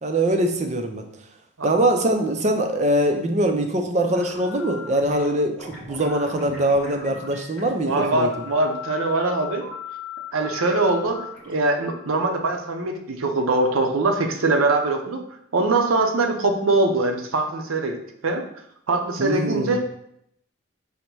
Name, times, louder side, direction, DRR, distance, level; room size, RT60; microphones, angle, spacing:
voice 1, 0.0-1.0 1.6-8.3 19.2-19.8, right 1 dB, 35° right, 5 dB, 0.4 m, -22 dB
sound 1, 4.1-13.0, left 5 dB, 5° left, 0.8 m, -39 dB
voice 2, 7.8-9.7 10.3-15.2 15.5-18.0 18.2-18.4 18.9-19.8, right 2 dB, 85° right, 4 dB, 0.6 m, -22 dB
5.2 x 2.1 x 4.5 m, 0.73 s
head